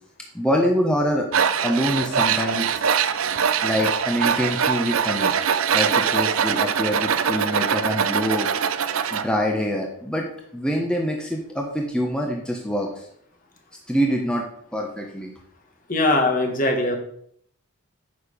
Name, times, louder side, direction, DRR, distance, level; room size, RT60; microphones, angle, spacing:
voice 1, 0.3-1.3 1.6-2.8 3.6-5.3 5.7-8.5 9.1-10.3 10.5-13.0 13.9-14.5 14.7-15.3, equal, 5° left, 0 dB, 1.1 m, -25 dB
Tools, 1.3-9.3, right 7 dB, 70° right, 0.6 m, -22 dB
voice 2, 15.9-17.0, left 2 dB, 40° left, 3 dB, 1.7 m, -20 dB
9.5 x 6.7 x 5.2 m, 0.67 s
head